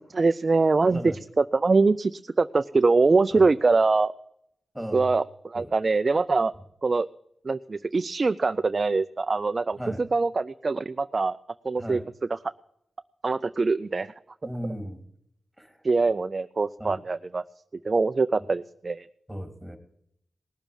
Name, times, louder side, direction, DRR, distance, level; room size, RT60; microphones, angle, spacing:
voice 1, 0.1-4.1 4.9-6.5 6.8-7.1 7.4-11.4 11.6-12.0 12.3-12.4 13.2-14.1 15.8-17.4 17.8-19.1, right 3 dB, 45° right, 10 dB, 0.5 m, -23 dB
voice 2, 0.8-1.2 3.3-3.5 4.7-5.1 5.5-5.7 9.7-10.0 11.8-12.1 14.4-15.0 15.6-15.8 16.8-17.0 19.3-19.8, equal, ahead, 5 dB, 3.5 m, -36 dB
18.5 x 7.0 x 9.0 m, 0.74 s
cardioid pair, 50°, 0 cm